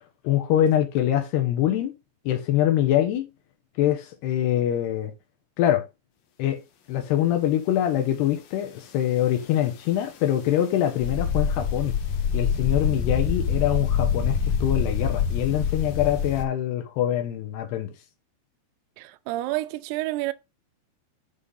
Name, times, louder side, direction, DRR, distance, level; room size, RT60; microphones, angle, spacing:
voice 1, 0.2-1.9 2.3-3.3 3.8-5.1 5.6-5.8 6.4-6.6 6.9-11.9 12.3-17.9, left 11 dB, 80° left, 3.2 m, -24 dB
sound 1, 11.0-16.4, left 6 dB, 65° left, 2.4 m, -25 dB
voice 2, 19.0-20.3, right 17 dB, 80° right, 2.6 m, -29 dB
10.0 x 3.5 x 5.6 m
omnidirectional pair, 4.8 m